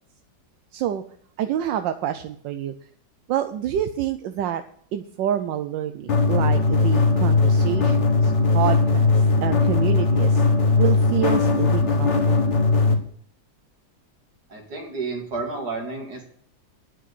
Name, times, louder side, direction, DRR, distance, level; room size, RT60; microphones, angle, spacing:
voice 1, 0.7-1.0 1.4-2.7 3.3-4.6 4.9-10.4 10.8-12.1, right 10 dB, 85° right, 8 dB, 1.4 m, -27 dB
sound 1, 6.1-12.9, left 3 dB, 40° left, 1.7 m, -19 dB
voice 2, 14.5-16.2, right 3 dB, 60° right, 1 dB, 2.9 m, -31 dB
9.3 x 6.3 x 8.1 m, 0.63 s
omnidirectional pair, 1.9 m